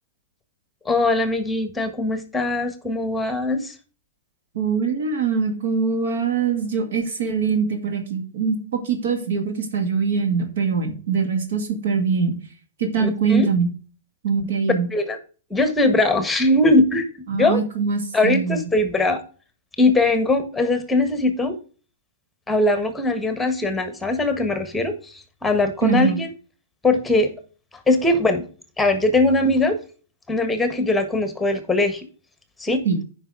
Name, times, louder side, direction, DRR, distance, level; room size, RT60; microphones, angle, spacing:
voice 1, 0.8-3.7 13.0-13.5 14.9-15.2 15.5-17.1 17.3-17.6 18.1-19.2 19.8-21.6 22.5-26.3 26.8-27.3 27.7-28.4 28.8-29.8 30.3-32.0 32.6-32.8, left 2 dB, 10° left, 9 dB, 1.4 m, -21 dB
voice 2, 4.5-12.3 12.8-13.7 14.2-14.9 17.3-18.6 25.8-26.2 32.9-33.0, right 5 dB, 65° right, 5 dB, 2.0 m, -23 dB
9.5 x 5.3 x 4.8 m, 0.38 s
hypercardioid pair, 115°, 0 cm